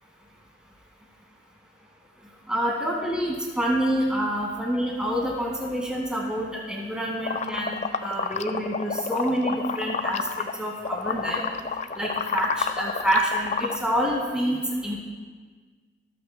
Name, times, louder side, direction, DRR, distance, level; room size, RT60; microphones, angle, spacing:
voice 1, 2.5-11.4 11.9-15.0, equal, 5° right, -3 dB, 1.9 m, -27 dB
sound 1, 7.2-10.6 10.8-13.8, left 5 dB, 40° left, 0.4 m, -29 dB
25.0 x 8.5 x 2.2 m, 1.5 s
head